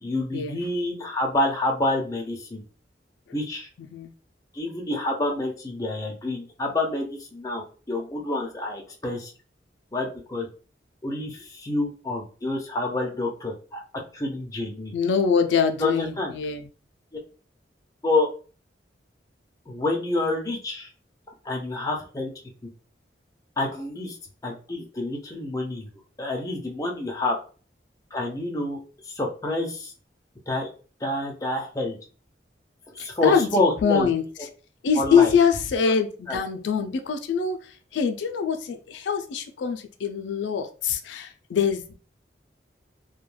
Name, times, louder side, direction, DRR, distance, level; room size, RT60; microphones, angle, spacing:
voice 1, 0.0-2.6 3.3-3.7 4.5-9.3 9.9-10.5 11.0-13.8 14.1-14.9 15.8-16.3 18.0-18.3 19.7-20.9 21.4-22.3 23.6-24.2 24.4-25.9 26.2-27.4 28.1-28.8 29.1-29.9 30.5-30.7 31.0-32.0 33.0-34.1 35.0-35.4 35.9-36.0 36.3-36.4, left 2 dB, 20° left, 0 dB, 0.5 m, -28 dB
voice 2, 3.8-4.1 14.9-16.7 33.0-33.5 33.8-34.2 34.8-37.6 37.9-41.9, left 6 dB, 80° left, 6 dB, 0.3 m, -24 dB
2.2 x 2.1 x 3.1 m, 0.37 s
head